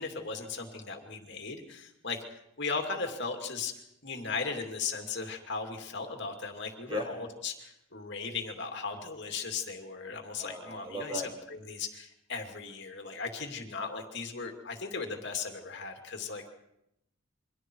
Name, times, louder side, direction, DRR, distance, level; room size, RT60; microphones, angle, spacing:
voice 1, 0.0-3.7 4.0-16.5, left 4 dB, 55° left, 4 dB, 2.6 m, -37 dB
voice 2, 10.4-11.3, equal, 25° right, 2 dB, 4.9 m, -36 dB
29.0 x 24.0 x 4.7 m, 0.82 s
head